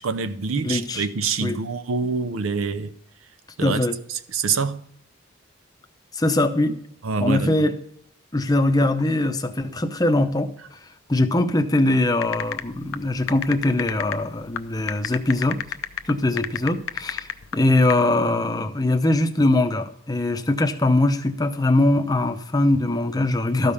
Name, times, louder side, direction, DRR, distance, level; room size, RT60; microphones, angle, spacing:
voice 1, 0.0-2.9 3.6-3.8 4.1-4.8 7.0-7.6, right 4 dB, 85° right, 0.6 m, -26 dB
voice 2, 0.6-1.1 1.4-1.6 3.6-4.0 6.2-6.8 7.2-7.7 8.3-10.5 11.1-15.6 16.1-17.3 17.5-23.7, left 2 dB, 20° left, 0.6 m, -21 dB
sound 1, 12.2-17.9, left 9 dB, 85° left, 0.6 m, -30 dB
13.0 x 5.3 x 6.9 m
head